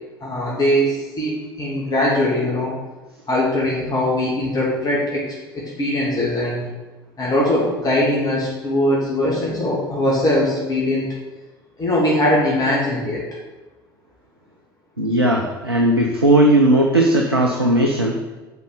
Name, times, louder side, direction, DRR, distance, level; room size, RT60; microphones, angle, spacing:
voice 1, 0.2-2.8 3.3-6.7 7.2-11.1 11.8-13.3, left 1 dB, 30° left, -5 dB, 2.8 m, -21 dB
voice 2, 15.0-18.2, right 1 dB, 90° right, 0 dB, 0.8 m, -17 dB
8.2 x 5.4 x 7.0 m, 1.2 s
figure-of-eight pair, 65°, 13 cm